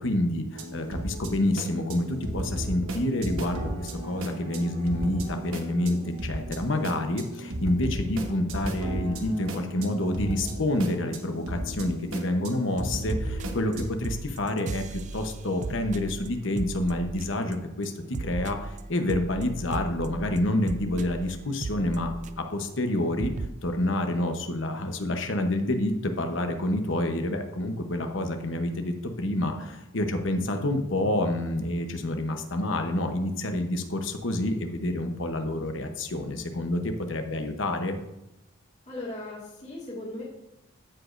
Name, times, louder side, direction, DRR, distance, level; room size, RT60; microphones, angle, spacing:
voice 1, 0.0-17.9 18.2-22.1 22.4-23.3 23.6-38.0, left 1 dB, 65° left, 6 dB, 0.9 m, -28 dB
sound 1, 0.5-13.8, right 1 dB, 90° right, 1.1 m, -35 dB
sound 2, 12.8-12.9 13.1-13.8 14.0-17.5 17.8-22.6 22.9-23.0 23.2-23.5, right 3 dB, 35° right, 0.3 m, -36 dB
voice 2, 38.9-40.2, left 2 dB, 35° left, -6 dB, 1.9 m, -37 dB
14.5 x 5.1 x 2.6 m, 0.93 s
head